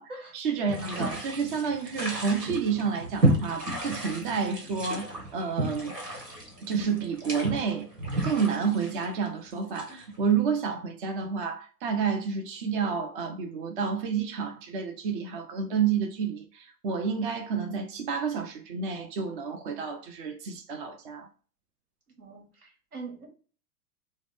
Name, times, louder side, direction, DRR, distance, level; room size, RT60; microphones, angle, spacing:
voice 1, 0.0-5.9 6.6-7.9 8.2-21.3, right 6 dB, 35° right, 0.4 m, -30 dB
sound 1, 0.7-10.2, right 1 dB, 85° right, 1.1 m, -32 dB
voice 2, 22.2-23.3, right 3 dB, 70° right, 1.4 m, -42 dB
3.6 x 2.1 x 3.2 m
figure-of-eight pair, 95°, 47 cm